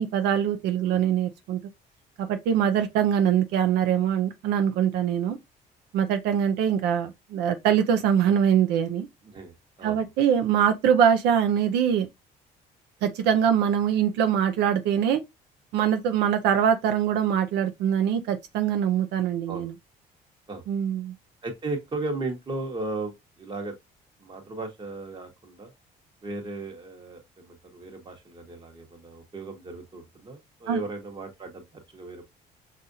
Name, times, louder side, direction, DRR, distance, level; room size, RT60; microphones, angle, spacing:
voice 1, 0.0-1.6 2.2-5.4 5.9-9.1 9.8-12.1 13.0-15.2 15.7-19.7 20.7-21.1 30.7-30.8, right 8 dB, 85° right, 0.5 m, -23 dB
voice 2, 9.2-10.0 19.5-19.7 20.5-20.6 21.4-23.7 24.2-25.7 26.2-32.2, right 2 dB, 30° right, 1.2 m, -36 dB
5.6 x 2.5 x 2.6 m
cardioid pair, 110°, 17 cm